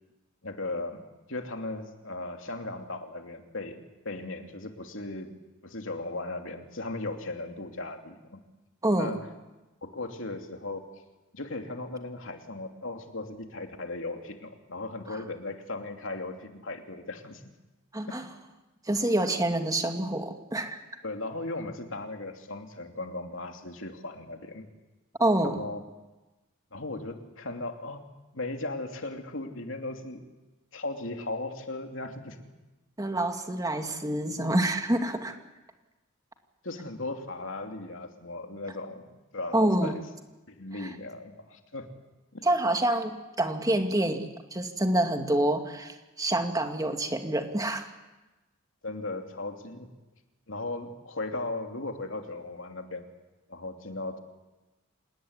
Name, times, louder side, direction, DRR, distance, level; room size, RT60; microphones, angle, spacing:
voice 1, 0.4-1.0 1.3-5.3 5.6-8.4 9.0-9.3 9.8-10.9 11.3-17.4 18.1-18.2 21.0-24.7 25.4-25.8 26.7-28.0 28.3-30.2 30.7-32.4 36.6-40.0 40.5-41.9 42.3-42.5 48.8-49.9 50.5-53.1 53.5-54.2, left 2 dB, 70° left, 4 dB, 2.9 m, -37 dB
voice 2, 17.9-18.2 18.9-20.8 25.2-25.6 33.0-35.3 39.5-39.9 40.8-40.9 42.4-47.9, right 1 dB, 20° right, 5 dB, 2.3 m, -27 dB
27.5 x 19.0 x 9.7 m, 1.1 s
head